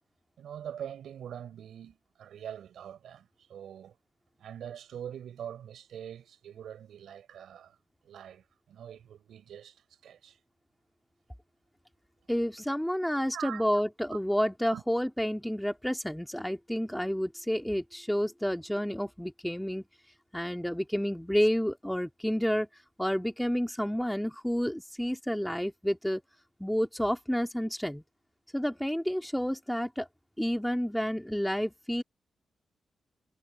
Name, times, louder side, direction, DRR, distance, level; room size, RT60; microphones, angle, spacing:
voice 1, 0.4-3.9 4.4-7.8 8.0-10.4 13.3-13.7 14.1-14.2 14.7-14.8, right 9 dB, 85° right, 4.6 m, -43 dB
voice 2, 12.3-19.8 20.3-22.7 23.0-26.2 26.6-28.0 28.5-30.1 30.4-32.0, equal, 5° left, 2.7 m, -30 dB
cardioid pair, 75°, 0 cm